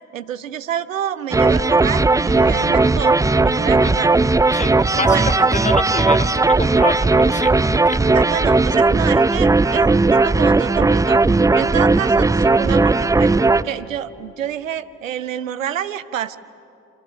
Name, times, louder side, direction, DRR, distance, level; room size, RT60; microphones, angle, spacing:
voice 1, 0.1-4.1 4.9-5.3 8.1-11.2 11.5-13.3 13.6-16.4, right 10 dB, 85° right, 15 dB, 0.5 m, -28 dB
sound 1, 1.3-13.6, right 3 dB, 10° right, 0.5 m, -16 dB
sound 2, 2.4-6.1, right 3 dB, 25° right, 2.4 m, -38 dB
voice 2, 4.5-8.1, left 3 dB, 20° left, 13 dB, 1.3 m, -27 dB
28.0 x 25.5 x 7.1 m, 2.8 s
figure-of-eight pair, 40°, 38 cm